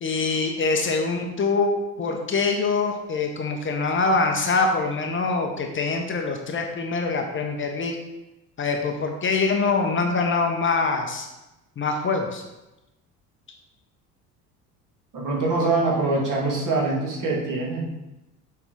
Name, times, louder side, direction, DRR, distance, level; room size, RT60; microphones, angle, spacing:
voice 1, 0.0-8.0 8.6-11.3 11.8-12.4, left 4 dB, 25° left, 3 dB, 0.9 m, -24 dB
voice 2, 15.1-17.9, right 3 dB, 40° right, -4 dB, 2.4 m, -24 dB
7.0 x 4.9 x 4.1 m, 0.97 s
figure-of-eight pair, 60°, 47 cm